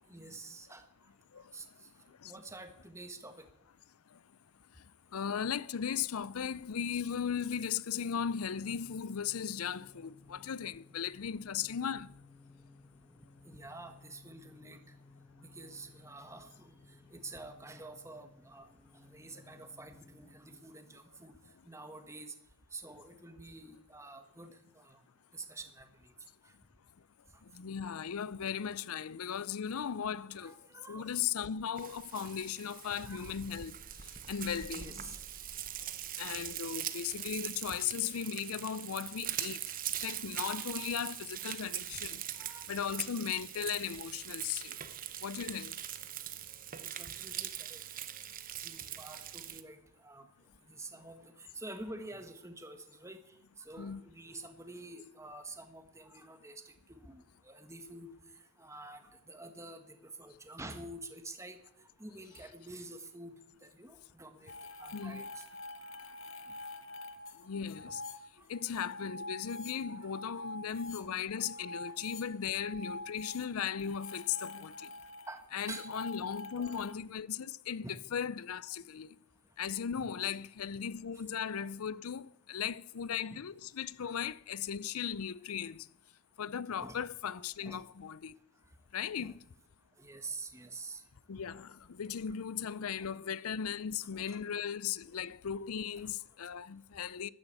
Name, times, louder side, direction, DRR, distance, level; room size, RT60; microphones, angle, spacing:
voice 1, 0.1-0.8 1.4-1.7 2.2-3.5 13.4-14.8 15.4-16.7 17.1-18.7 19.1-21.4 21.6-22.3 22.7-24.5 24.7-25.0 25.3-26.1 26.4-26.5 30.4-31.1 32.9-33.4 34.7-35.2 42.3-43.0 46.8-47.8 48.6-50.3 50.7-53.2 53.6-58.1 58.6-61.6 62.0-64.5 64.8-65.4 67.8-67.9 68.6-68.9 69.9-70.1 75.3-75.9 76.5-76.8 77.8-78.0 79.9-80.3 83.3-83.4 84.0-84.2 86.8-87.0 87.6-87.8 89.2-89.3 90.0-91.0 93.0-93.1 94.0-94.4 96.0-96.1, right 2 dB, 15° right, 1.6 m, -48 dB
voice 2, 5.1-12.1 27.5-30.5 30.9-33.8 34.3-34.9 36.2-39.6 40.0-42.2 42.7-44.8 45.2-45.7 53.8-54.0 64.9-65.2 67.4-68.0 68.5-74.9 75.5-79.1 79.6-85.9 86.4-88.4 88.9-89.4 91.3-97.3, left 8 dB, 85° left, 0.5 m, -37 dB
sound 1, 8.2-20.6, left 3 dB, 5° left, 1.5 m, -59 dB
Frying (food), 31.8-49.6, right 11 dB, 40° right, 0.9 m, -42 dB
sound 2, 64.5-77.0, left 2 dB, 60° left, 1.1 m, -46 dB
12.5 x 12.5 x 8.2 m
head